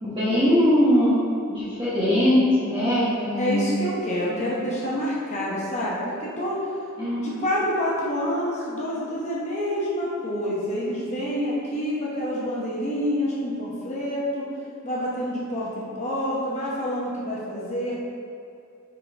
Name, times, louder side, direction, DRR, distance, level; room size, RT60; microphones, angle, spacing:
voice 1, 0.0-1.2 1.5-3.7 4.3-4.5 7.0-7.3, left 1 dB, 25° right, -12 dB, 1.3 m, -21 dB
voice 2, 3.4-6.6 7.2-14.5 14.8-18.0, equal, 35° left, -6 dB, 0.9 m, -27 dB
5.6 x 4.8 x 3.6 m, 2.6 s
head